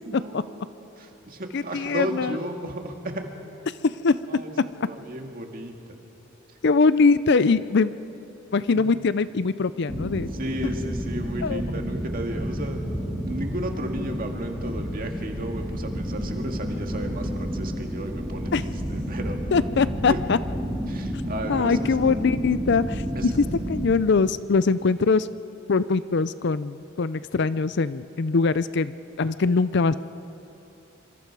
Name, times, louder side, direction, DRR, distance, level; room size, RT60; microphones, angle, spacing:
voice 1, 0.1-0.7 1.0-3.3 4.3-5.7 8.7-8.9 10.4-12.8 13.2-19.4 20.1-20.2 20.9-21.9 23.2-23.3, right 1 dB, 45° right, 3 dB, 2.0 m, -34 dB
voice 2, 1.5-2.4 3.7-4.4 6.6-7.9 8.5-10.3 11.4-11.6 18.5-18.6 19.5-20.4 21.5-25.3 25.7-29.9, left 4 dB, 55° left, 15 dB, 0.5 m, -22 dB
sound 1, 9.9-23.9, equal, 5° right, 2.1 m, -30 dB
26.0 x 25.0 x 4.8 m, 2.8 s
head